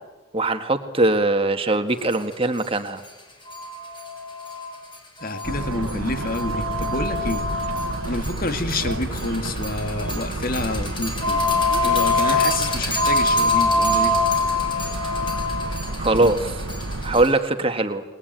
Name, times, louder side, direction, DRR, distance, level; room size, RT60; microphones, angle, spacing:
voice 1, 0.3-3.0 16.0-16.6 17.0-18.0, right 2 dB, 25° right, 7 dB, 1.8 m, -21 dB
sound 1, 2.1-2.2 2.6-2.7 3.0-3.1 3.5-17.4, left 2 dB, 25° left, 5.3 m, -25 dB
voice 2, 5.2-7.5 8.0-11.5 11.8-14.2, left 2 dB, 45° left, 8 dB, 2.0 m, -28 dB
sound 2, 5.4-17.3, right 2 dB, 85° right, 1.5 m, -31 dB
30.0 x 21.0 x 9.2 m, 1.2 s
head